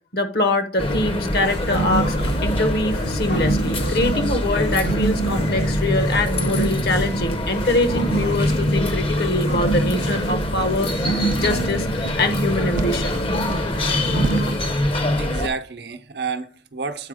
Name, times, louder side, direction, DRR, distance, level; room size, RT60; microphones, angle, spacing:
voice 1, 0.1-13.2, left 2 dB, 55° left, 1.0 m, -24 dB
sound 1, 0.8-15.5, left 1 dB, 30° left, 0.7 m, -24 dB
sound 2, 1.3-14.5, right 3 dB, 70° left, 2.3 m, -29 dB
sound 3, 9.0-9.2 9.8-10.0 10.6-10.8 11.3-11.5 12.0-12.3 12.7-13.1 13.4-13.7 14.2-14.5, right 3 dB, 45° right, 0.4 m, -31 dB
voice 2, 13.7-14.9 15.2-17.1, right 4 dB, 65° right, 0.8 m, -32 dB
8.4 x 4.3 x 4.9 m
head